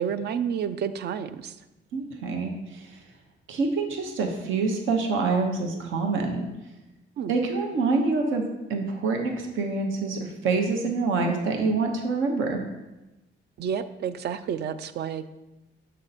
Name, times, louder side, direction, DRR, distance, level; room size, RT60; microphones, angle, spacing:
voice 1, 0.0-1.5 7.2-7.3 13.6-15.3, right 8 dB, 55° right, 12 dB, 0.4 m, -30 dB
voice 2, 1.9-3.0 3.5-6.5 7.3-8.4 8.7-12.6, right 3 dB, 80° right, 2 dB, 1.0 m, -26 dB
6.4 x 4.4 x 4.1 m, 1.0 s
cardioid pair, 90°, 20 cm